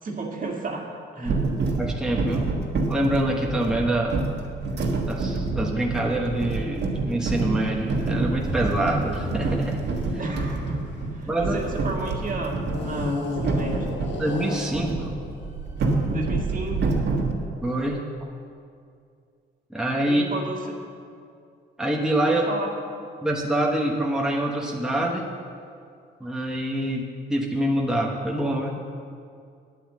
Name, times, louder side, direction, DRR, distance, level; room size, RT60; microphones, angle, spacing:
voice 1, 0.0-1.4 10.2-10.8 11.1-13.9 16.1-17.0 20.0-20.8 22.3-22.8, right 2 dB, 45° right, 1 dB, 1.9 m, -33 dB
voice 2, 1.2-2.5 2.9-4.2 5.0-9.8 11.3-11.6 14.2-15.1 17.6-18.0 19.7-20.2 21.8-22.4 23.2-25.2 26.2-27.0 27.3-28.8, right 1 dB, 5° right, -1 dB, 1.2 m, -25 dB
sound 1, 1.2-14.2 14.7-17.3, right 3 dB, 60° right, 1.6 m, -27 dB
sound 2, 7.2-11.9 12.7-16.1, left 3 dB, 65° left, 1.6 m, -36 dB
9.5 x 8.8 x 7.5 m, 2.4 s
cardioid pair, 90°, 20 cm